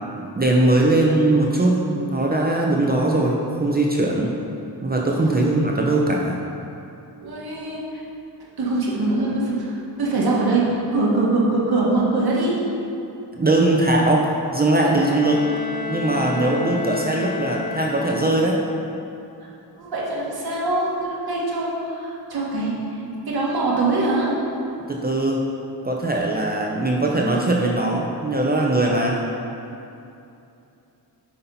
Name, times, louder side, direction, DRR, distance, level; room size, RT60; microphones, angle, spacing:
voice 1, 0.4-4.3 4.8-6.4 13.4-15.5 15.9-18.6 24.9-25.4 25.8-29.2, right 2 dB, 25° right, -1 dB, 0.6 m, -20 dB
voice 2, 5.3-5.6 7.2-7.8 8.6-9.7 10.0-12.6 19.8-22.7 23.3-24.3, right 2 dB, 65° right, -5 dB, 1.9 m, -23 dB
Bowed string instrument, 14.8-18.8, left 4 dB, 20° left, 0.4 m, -31 dB
9.8 x 5.6 x 4.0 m, 2.7 s
wide cardioid pair, 175°, 41 cm